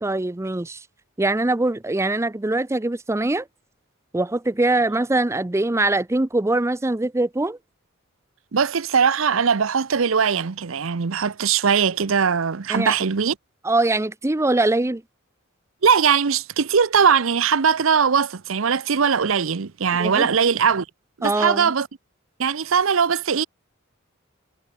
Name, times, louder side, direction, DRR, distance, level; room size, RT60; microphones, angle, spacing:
voice 1, 0.0-0.8 1.2-3.5 4.1-7.6 12.7-12.9 13.6-15.0 20.0-20.3 21.2-21.7, right 2 dB, 15° right, 0.6 m, -22 dB
voice 2, 8.5-13.4 15.8-20.9 21.2-21.9 22.4-23.4, right 6 dB, 75° right, 0.7 m, -20 dB
head